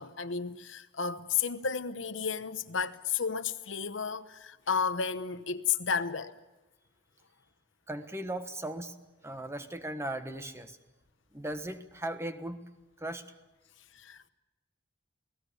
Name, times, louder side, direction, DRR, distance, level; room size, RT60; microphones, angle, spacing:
voice 1, 0.0-6.3 13.9-14.3, left 6 dB, 75° left, 1.1 m, -32 dB
voice 2, 7.9-8.9 9.2-10.8 11.3-12.6 13.0-13.2, right 1 dB, 15° right, 1.4 m, -37 dB
29.0 x 18.0 x 6.9 m
head